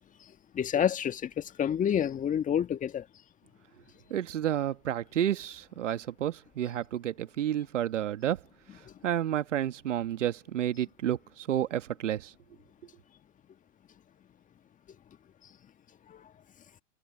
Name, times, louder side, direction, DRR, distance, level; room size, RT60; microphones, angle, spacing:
voice 1, 0.5-3.0 16.1-16.3, left 9 dB, 20° left, 1.7 m, -28 dB
voice 2, 4.1-8.4 9.0-12.3, right 11 dB, 70° right, 1.8 m, -30 dB
hypercardioid pair, 115°, 38 cm